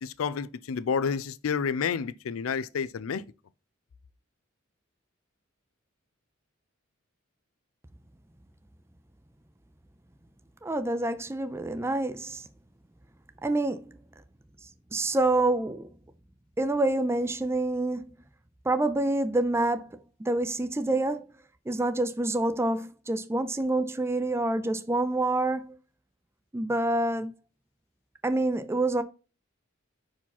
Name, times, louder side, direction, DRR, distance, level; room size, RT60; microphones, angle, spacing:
voice 1, 0.0-3.2, left 6 dB, 85° left, 0.4 m, -30 dB
voice 2, 10.6-12.4 13.4-14.0 14.9-15.9 16.6-18.1 18.6-21.3 21.7-25.8 26.5-27.3 28.2-29.0, right 2 dB, 15° right, 0.4 m, -27 dB
5.5 x 4.9 x 4.0 m
head